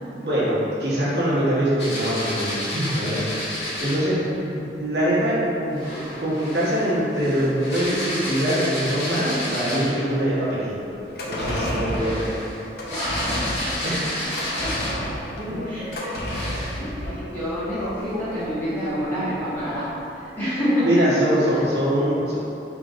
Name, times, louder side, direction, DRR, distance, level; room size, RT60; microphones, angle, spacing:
voice 1, 0.1-3.4 3.8-10.8 11.3-12.2 13.8-14.1 15.4-15.5 20.8-22.3, equal, 70° right, -9 dB, 1.1 m, -23 dB
sound 1, 1.8-4.1 5.7-10.1 11.2-15.1 15.7-15.8 16.2-16.8, left 1 dB, 75° left, 1.4 m, -31 dB
sound 2, 11.0-19.6 19.9-20.0, equal, 55° left, 0.6 m, -31 dB
voice 2, 12.9-13.6 14.6-14.9 15.6-20.9, equal, 10° left, -14 dB, 1.5 m, -28 dB
4.9 x 3.1 x 2.5 m, 3.0 s
head